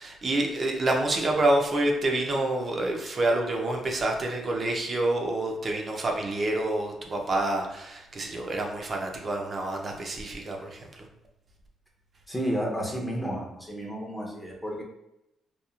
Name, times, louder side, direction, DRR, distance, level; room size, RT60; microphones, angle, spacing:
voice 1, 0.0-11.1, right 2 dB, 45° right, 1 dB, 0.5 m, -27 dB
voice 2, 12.3-14.8, equal, 10° left, -2 dB, 0.6 m, -31 dB
2.9 x 2.3 x 2.3 m, 0.86 s
cardioid pair, 80°, 0 cm